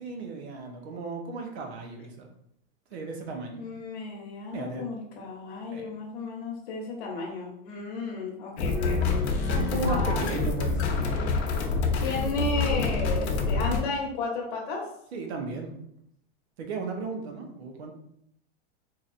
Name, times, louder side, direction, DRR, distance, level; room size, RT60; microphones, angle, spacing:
voice 1, 0.0-2.3 2.9-3.6 4.5-4.9 5.7-6.0 9.4-11.2 15.1-15.8 16.6-17.9, right 4 dB, 75° right, 3 dB, 1.0 m, -35 dB
voice 2, 3.6-9.5 9.8-10.3 12.0-14.9, left 3 dB, 60° left, -2 dB, 1.0 m, -34 dB
sound 1, 8.6-13.8, left 4 dB, 80° left, 0.9 m, -26 dB
4.2 x 2.9 x 2.5 m, 0.73 s
supercardioid pair, 165°, 32 cm